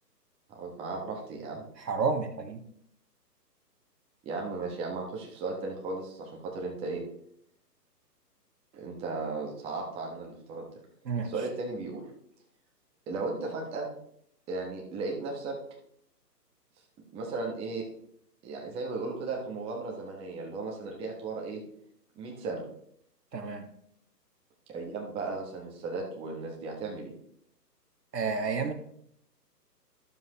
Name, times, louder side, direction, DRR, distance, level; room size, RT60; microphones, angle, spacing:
voice 1, 0.5-1.6 4.2-7.0 8.7-10.6 11.2-12.0 13.1-13.9 14.5-15.6 17.1-17.8 18.4-21.6 22.1-22.6 24.7-27.1, right 3 dB, 10° right, -1 dB, 1.1 m, -35 dB
voice 2, 1.8-2.6 11.0-11.3 23.3-23.7 28.1-28.7, right 4 dB, 75° right, 6 dB, 1.6 m, -30 dB
12.0 x 7.2 x 3.0 m, 0.68 s
hypercardioid pair, 145°, 49 cm